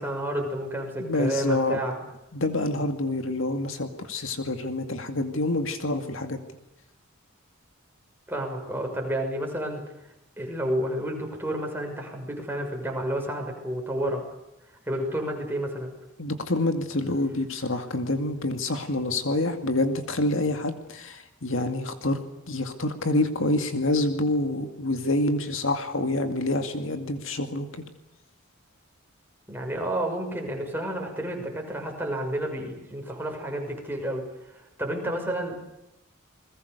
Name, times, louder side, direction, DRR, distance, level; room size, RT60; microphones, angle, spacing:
voice 1, 0.0-1.9 8.3-9.8 10.4-14.2 14.9-15.9 29.5-34.2 34.5-35.7, right 1 dB, 10° right, 1 dB, 6.0 m, -30 dB
voice 2, 1.0-1.8 2.3-6.4 16.2-22.2 22.5-27.8, left 2 dB, 65° left, 7 dB, 2.2 m, -27 dB
29.0 x 21.5 x 6.8 m, 0.90 s
head